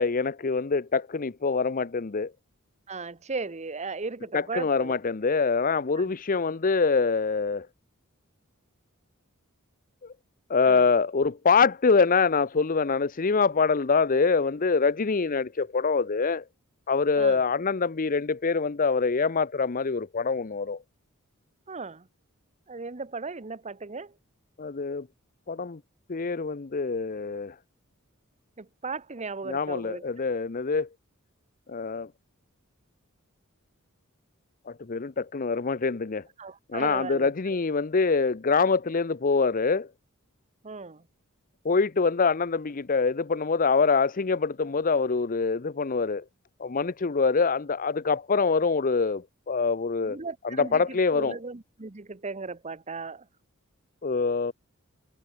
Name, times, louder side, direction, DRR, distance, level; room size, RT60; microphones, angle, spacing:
voice 1, 0.0-2.3 4.3-7.7 10.5-16.4 16.9-20.8 24.6-25.1 25.5-25.8 26.1-27.5 29.5-30.9 31.7-32.1 34.7-36.2 36.7-39.9 41.6-46.2 46.6-50.2 50.4-51.4 54.0-54.5, left 4 dB, 40° left, 0.7 m, -25 dB
voice 2, 2.9-5.0 6.0-6.1 10.6-10.9 17.2-17.4 21.7-22.1 22.7-24.1 28.6-30.0 36.4-37.3 40.6-41.0 50.0-53.3, right 4 dB, 30° right, 1.0 m, -36 dB
head